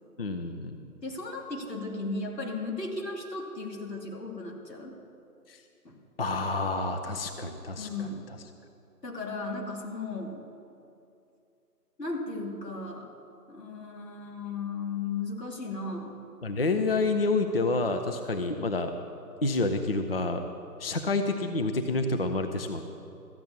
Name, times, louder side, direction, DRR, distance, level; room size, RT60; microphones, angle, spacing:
voice 1, 0.2-0.8 5.5-5.6 6.2-7.9 16.4-18.9 19.4-20.4 20.8-22.9, left 3 dB, 40° left, 6 dB, 0.6 m, -28 dB
voice 2, 1.0-4.9 5.8-6.0 7.8-8.2 9.0-10.4 12.0-13.1 13.5-16.2, left 3 dB, 85° left, 1 dB, 2.7 m, -35 dB
13.5 x 9.2 x 7.1 m, 2.6 s
figure-of-eight pair, 155°, 48 cm